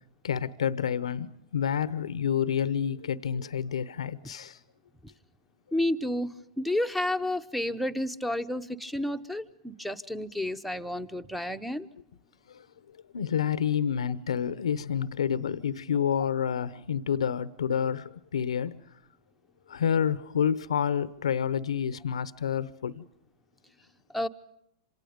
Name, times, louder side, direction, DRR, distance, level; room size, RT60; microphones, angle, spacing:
voice 1, 0.2-4.6 13.1-18.8 19.7-23.0, left 8 dB, 85° left, 0.8 m, -29 dB
voice 2, 5.7-11.9 24.1-24.3, left 1 dB, ahead, 0.9 m, -31 dB
27.0 x 27.0 x 5.2 m
hypercardioid pair, 120°, 3 cm